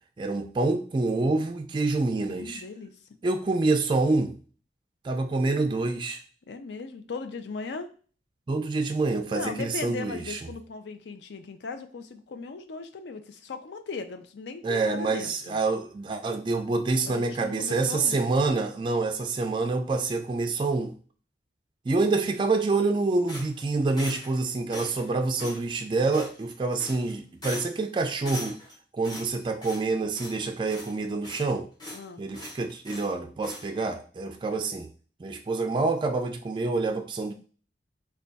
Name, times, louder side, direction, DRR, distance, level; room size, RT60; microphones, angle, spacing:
voice 1, 0.2-2.6 3.2-4.3 5.0-6.2 8.5-10.4 14.6-20.9 21.9-28.6 28.9-31.7 32.2-34.9 35.2-37.3, right 3 dB, 25° right, 5 dB, 0.3 m, -27 dB
voice 2, 2.3-3.0 6.5-7.9 9.3-15.6 17.0-18.3 31.9-32.2, left 4 dB, 75° left, 8 dB, 0.5 m, -38 dB
sound 1, 23.3-24.4 24.7-25.1 25.4-25.6 26.1-26.5 26.8-27.1 27.4-27.8 28.2-28.7 29.0-29.9 30.1-30.4 30.7-31.5 31.8-32.0 32.3-33.1 33.4-33.7, left 1 dB, 25° left, 1.2 m, -40 dB
3.4 x 2.3 x 3.9 m, 0.40 s
head